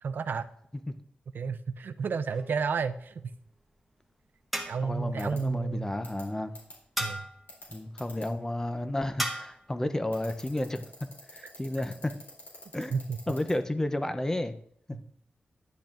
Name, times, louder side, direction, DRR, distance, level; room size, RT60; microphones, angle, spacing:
voice 1, 0.0-0.5 1.3-3.3 4.6-5.9 7.0-7.3 12.9-13.2 14.9-15.0, right 5 dB, 75° right, 11 dB, 0.4 m, -31 dB
sound 1, 2.3-2.9 4.5-5.1 7.0-7.5 9.2-9.7, equal, ahead, 1.1 m, -35 dB
voice 2, 4.8-6.5 7.7-12.1 12.7-13.0 13.3-14.5 14.9-15.0, left 1 dB, 15° left, 9 dB, 0.6 m, -32 dB
sound 2, 5.2-5.4 6.0-6.2 6.5-6.7 7.5-8.2 10.1-13.5, left 1 dB, 75° left, 3.3 m, -46 dB
10.5 x 8.0 x 2.5 m, 0.69 s
wide cardioid pair, 95°, 3 cm